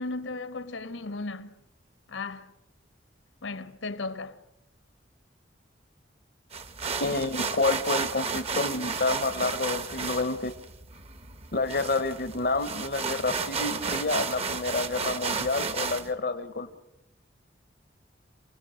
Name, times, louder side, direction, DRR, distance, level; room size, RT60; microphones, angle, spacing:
voice 1, 0.0-1.6 2.1-2.5 3.4-4.4, left 3 dB, 80° left, 1.4 m, -35 dB
sound 1, 6.5-16.1, right 5 dB, 30° right, 1.0 m, -33 dB
voice 2, 7.0-10.5 11.5-16.7, left 3 dB, 50° left, 0.9 m, -29 dB
28.5 x 18.5 x 6.4 m
head